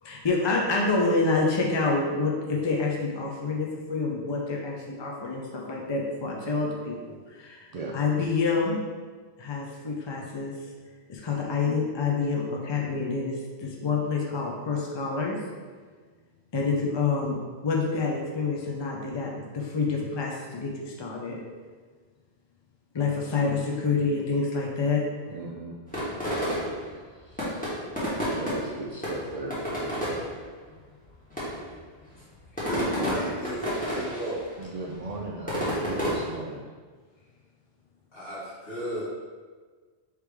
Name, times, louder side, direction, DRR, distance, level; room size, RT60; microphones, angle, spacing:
voice 1, 0.0-8.8 9.4-10.5 11.1-15.4 16.5-17.4 17.6-21.4 22.9-25.0, left 4 dB, 40° left, -1 dB, 0.4 m, -27 dB
voice 2, 25.3-25.8 27.3-27.7 28.3-29.5 34.6-36.6, right 2 dB, 60° right, -2 dB, 0.4 m, -37 dB
sound 1, 25.9-26.9 27.3-28.8 29.0-30.3 31.0-31.1 31.3-31.7 32.4-34.3 34.6-36.3, equal, 10° left, 1.4 m, -30 dB
voice 3, 32.7-34.4 38.1-39.0, equal, 60° left, -9 dB, 1.9 m, -34 dB
3.3 x 3.3 x 4.9 m, 1.5 s
omnidirectional pair, 1.1 m